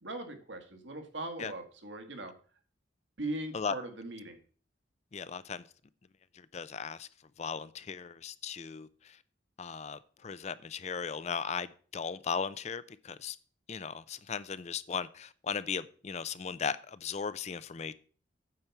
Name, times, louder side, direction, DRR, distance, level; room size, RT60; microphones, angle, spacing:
voice 1, 0.0-2.3 3.2-4.4, right 2 dB, 75° right, 1.6 m, -40 dB
voice 2, 5.1-5.6 6.3-7.1 7.4-9.2 9.6-13.4 13.7-17.9, left 6 dB, 35° left, 0.4 m, -37 dB
8.8 x 4.6 x 7.0 m
head